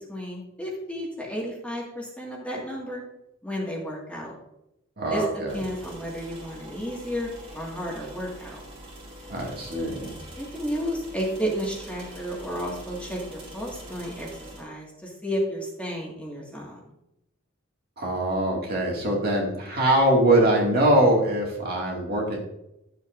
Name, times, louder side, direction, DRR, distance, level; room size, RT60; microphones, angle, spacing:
voice 1, 0.1-3.0 3.4-4.3 5.1-8.6 10.4-14.3 14.6-16.8, equal, 5° left, -3 dB, 1.9 m, -32 dB
voice 2, 5.0-5.6 9.3-10.2 18.0-22.4, right 1 dB, 50° right, -1 dB, 2.2 m, -23 dB
sound 1, 5.5-14.6, equal, 30° right, 2.5 m, -44 dB
12.0 x 7.5 x 2.6 m, 0.86 s
head